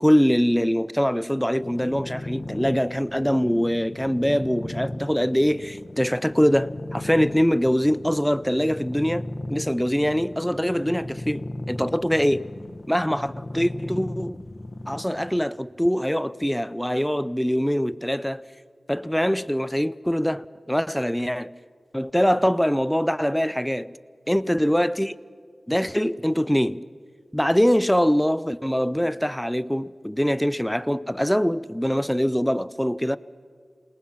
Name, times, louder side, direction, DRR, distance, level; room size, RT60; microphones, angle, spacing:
voice 1, 0.0-12.5 12.9-14.5 14.9-18.4 18.9-21.5 21.9-23.9 24.3-25.2 25.7-26.8 27.3-33.2, equal, 5° left, 0.5 m, -23 dB
sound 1, 1.6-15.4, left 1 dB, 45° left, 1.0 m, -36 dB
28.0 x 19.5 x 5.8 m
cardioid pair, 45°, 0 cm